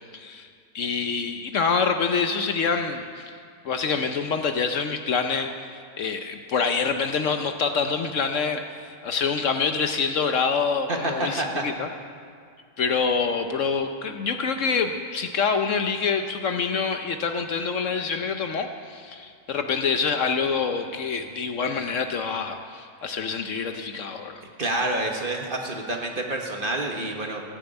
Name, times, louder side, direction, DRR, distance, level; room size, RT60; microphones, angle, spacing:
voice 1, 0.1-0.5 0.7-3.4 3.6-11.9 12.8-24.4, left 5 dB, 60° left, 6 dB, 1.0 m, -26 dB
voice 2, 10.9-11.6 24.6-27.4, right 2 dB, 35° right, 1 dB, 1.5 m, -28 dB
16.0 x 6.9 x 8.9 m, 2.2 s
omnidirectional pair, 1.6 m